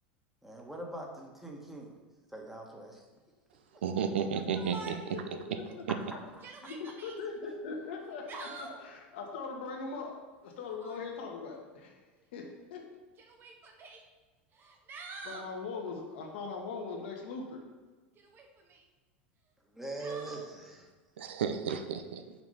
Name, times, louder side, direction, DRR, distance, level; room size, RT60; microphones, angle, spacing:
voice 1, 0.4-2.0 2.3-3.0 3.7-3.8 6.1-6.4 7.4-7.5 19.7-20.9, right 2 dB, 5° right, 0 dB, 1.4 m, -43 dB
voice 2, 3.8-5.4 21.2-22.3, right 6 dB, 80° right, 8 dB, 0.7 m, -33 dB
Yell, 4.5-5.2 5.7-5.8 6.3-7.2 8.0-8.9 10.6-11.1 12.2-12.3 13.2-14.0 14.5-15.5 18.2-18.8 20.0-20.5, right 3 dB, 35° right, 1.1 m, -46 dB
voice 3, 5.1-5.6 6.6-12.0 12.3-12.9 15.2-17.6, left 4 dB, 75° left, 2 dB, 1.5 m, -40 dB
6.0 x 4.8 x 5.5 m, 1.3 s
hypercardioid pair, 95°, 6 cm